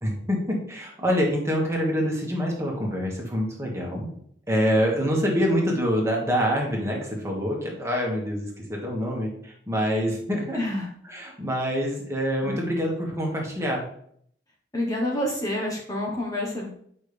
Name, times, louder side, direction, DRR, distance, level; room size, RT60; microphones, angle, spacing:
voice 1, 0.0-4.1 4.5-10.6 11.1-13.8, equal, 15° right, -1 dB, 1.8 m, -26 dB
voice 2, 10.5-10.9 12.4-12.5 14.7-16.7, left 1 dB, 20° left, -2 dB, 1.2 m, -28 dB
9.1 x 5.6 x 3.4 m, 0.65 s
head